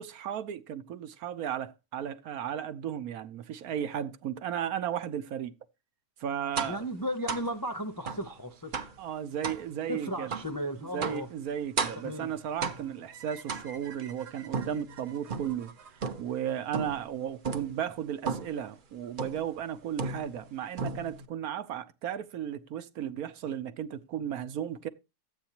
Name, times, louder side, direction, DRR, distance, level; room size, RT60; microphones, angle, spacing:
voice 1, 0.0-5.5 6.2-6.9 9.0-10.3 10.8-15.7 16.2-24.9, right 9 dB, 70° right, 1.2 m, -35 dB
voice 2, 6.6-8.8 9.9-11.3 12.0-12.3, equal, 30° left, 0.4 m, -35 dB
sound 1, 6.6-6.9 7.3-7.5 8.1-8.3 8.7-9.0 9.4-9.7 10.3-10.5 11.0-11.3 11.8-12.1 12.6-13.0 13.5-14.0 14.5-15.6 16.0-16.4 16.7-17.1 17.4-17.8 18.3-18.6 19.2-19.5 20.0-20.5 20.8-21.3, right 5 dB, 45° right, 0.7 m, -34 dB
sound 2, 13.1-17.2, right 6 dB, 90° right, 1.8 m, -51 dB
13.5 x 8.6 x 2.9 m
omnidirectional pair, 1.7 m